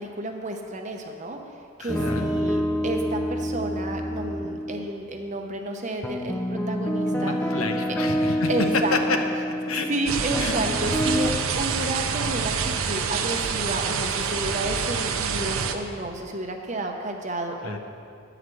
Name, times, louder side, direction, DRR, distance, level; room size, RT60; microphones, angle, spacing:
voice 1, 0.0-1.4 1.8-7.4 8.5-8.9 9.9-17.8, right 2 dB, 35° right, 3 dB, 0.8 m, -31 dB
voice 2, 1.8-2.3 7.1-9.2 9.7-9.9 10.4-10.5 17.6-17.8, left 3 dB, 75° left, 4 dB, 0.8 m, -28 dB
sound 1, 1.9-4.9 6.0-11.3, equal, 5° left, 0.4 m, -27 dB
sound 2, 10.1-15.7, right 6 dB, 70° right, 0.6 m, -27 dB
9.5 x 4.9 x 7.6 m, 2.4 s
head